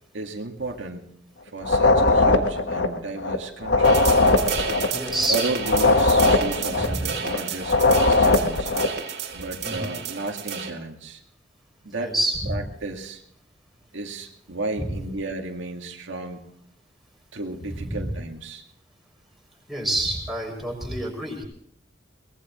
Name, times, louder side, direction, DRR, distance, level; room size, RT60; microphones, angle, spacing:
voice 1, 0.1-1.1 1.5-4.0 5.3-8.7 9.3-11.2 11.8-12.1 12.5-13.2 13.9-16.4 17.3-18.6, right 2 dB, 85° right, 2 dB, 2.0 m, -33 dB
sound 1, 1.6-9.0, left 2 dB, 70° left, 1.5 m, -20 dB
sound 2, 3.8-10.7, right 7 dB, 60° right, 2.5 m, -31 dB
voice 2, 4.9-5.4 6.8-7.0 9.6-9.9 11.9-12.6 14.8-14.9 17.8-18.1 19.7-21.4, right 1 dB, ahead, -2 dB, 6.4 m, -27 dB
23.0 x 20.0 x 3.1 m, 0.69 s
head